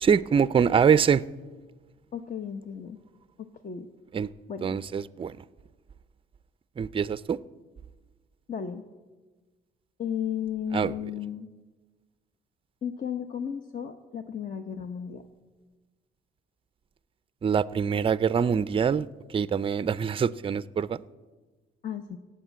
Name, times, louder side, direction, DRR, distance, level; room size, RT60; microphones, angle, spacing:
voice 1, 0.0-1.2 4.1-4.3 4.6-5.3 6.8-7.4 10.7-10.9 17.4-19.1 19.3-21.0, right 7 dB, 25° right, 0.4 m, -24 dB
voice 2, 2.1-3.0 3.4-3.9 4.5-4.7 8.5-8.8 10.0-11.5 12.8-15.2 21.8-22.2, left 8 dB, 40° left, 0.9 m, -34 dB
16.5 x 8.6 x 8.2 m
cardioid pair, 90°, 20 cm